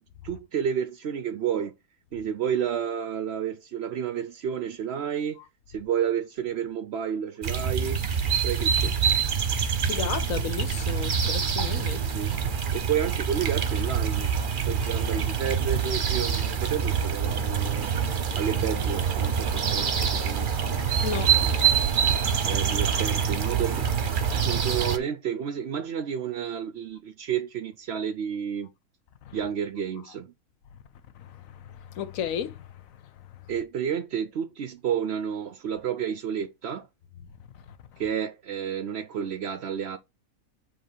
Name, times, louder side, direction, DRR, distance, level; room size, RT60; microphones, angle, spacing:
voice 1, 0.2-1.7 2.1-5.4 5.7-8.0 8.4-9.0 11.9-12.3 12.7-14.3 14.7-17.9 18.3-20.5 22.4-23.9 24.3-28.7 29.3-30.3 33.5-36.9 38.0-40.0, right 8 dB, 65° right, 0.6 m, -31 dB
sound 1, 7.4-25.0, right 7 dB, 45° right, 0.9 m, -25 dB
voice 2, 9.8-12.0 21.0-21.4 22.2-22.3 22.9-23.0 29.2-29.4 31.2-32.7 37.7-37.8, left 8 dB, 70° left, 1.1 m, -34 dB
7.6 x 3.0 x 4.4 m
omnidirectional pair, 1.5 m